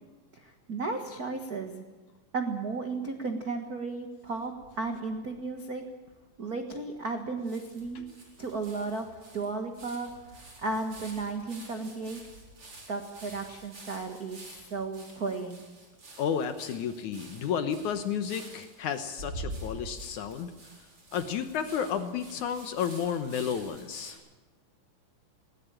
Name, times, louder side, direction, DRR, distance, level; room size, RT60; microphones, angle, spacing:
voice 1, 0.3-1.8 2.3-5.8 6.4-8.0 8.4-12.2 12.9-15.6, right 3 dB, 55° right, 5 dB, 1.0 m, -34 dB
sound 1, 4.4-5.3 5.8-5.9 6.1-6.2 7.0-7.1 7.5-24.1, right 1 dB, 35° right, 5.2 m, -47 dB
voice 2, 16.2-20.5 21.1-24.2, left 7 dB, 65° left, 9 dB, 2.2 m, -32 dB
20.0 x 18.5 x 9.0 m, 1.3 s
omnidirectional pair, 4.1 m